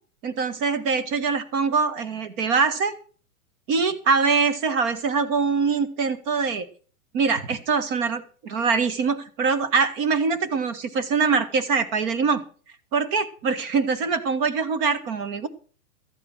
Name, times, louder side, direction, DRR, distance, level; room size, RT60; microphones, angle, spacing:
voice 1, 0.2-2.9 3.7-6.7 7.1-12.4 12.9-15.5, right 5 dB, 40° right, 10 dB, 1.7 m, -23 dB
13.5 x 8.9 x 6.1 m, 0.41 s
hypercardioid pair, 150°, 42 cm